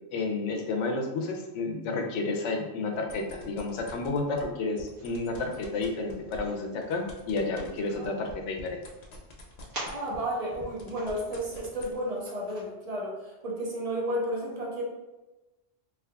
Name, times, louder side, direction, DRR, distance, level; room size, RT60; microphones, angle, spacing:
voice 1, 0.1-8.8, left 3 dB, 80° left, 3 dB, 0.9 m, -31 dB
sound 1, 2.9-4.4 4.8-10.3 10.5-11.9, left 2 dB, 50° left, 0.5 m, -47 dB
sound 2, 4.9-12.6, right 1 dB, 80° right, 1.5 m, -48 dB
voice 2, 9.9-14.8, right 1 dB, 40° right, -3 dB, 0.6 m, -32 dB
3.5 x 3.1 x 2.2 m, 1.1 s
omnidirectional pair, 1.2 m